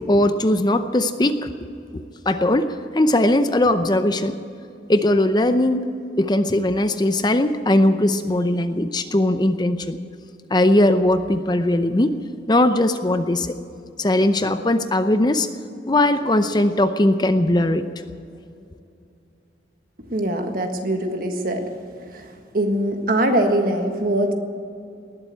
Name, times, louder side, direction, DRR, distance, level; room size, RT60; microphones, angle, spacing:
voice 1, 0.1-1.5 1.9-4.4 4.9-5.9 6.2-10.0 10.5-12.1 12.5-13.6 14.0-15.5 15.9-17.8, left 1 dB, 25° left, 9 dB, 0.6 m, -19 dB
voice 2, 20.1-21.6 22.1-24.3, right 1 dB, 55° right, 5 dB, 1.6 m, -22 dB
19.5 x 7.9 x 9.2 m, 2.6 s
head